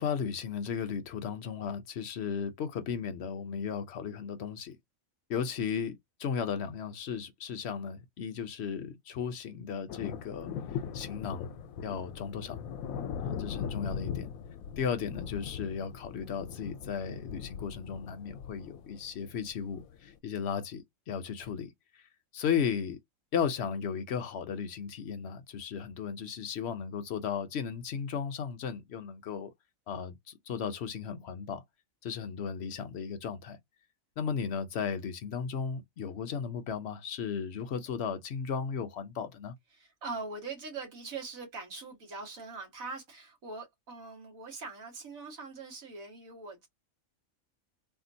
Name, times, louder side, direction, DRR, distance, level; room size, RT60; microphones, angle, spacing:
voice 1, 0.0-4.8 5.3-10.5 10.9-11.5 11.8-12.6 13.2-14.3 14.8-21.7 22.3-23.0 23.3-29.5 29.9-31.6 32.0-33.6 34.2-39.5, left 7 dB, 60° left, 0.8 m, -35 dB
sound 1, 9.9-20.1, left 7 dB, 85° left, 1.0 m, -40 dB
voice 2, 39.7-46.7, right 4 dB, 80° right, 2.0 m, -42 dB
3.6 x 2.3 x 2.6 m
omnidirectional pair, 1.4 m